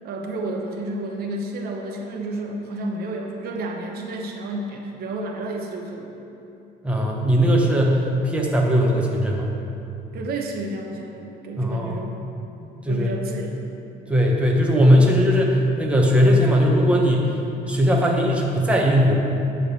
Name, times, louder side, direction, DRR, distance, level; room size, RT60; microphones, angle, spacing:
voice 1, 0.0-6.1 10.1-12.2 12.9-13.8, right 2 dB, 65° right, 1 dB, 1.1 m, -31 dB
voice 2, 6.8-9.5 11.6-12.0 12.6-13.1 14.1-17.3 17.7-19.1, equal, 5° right, -2 dB, 1.3 m, -19 dB
10.5 x 3.9 x 7.5 m, 2.8 s
cardioid pair, 110°, 17 cm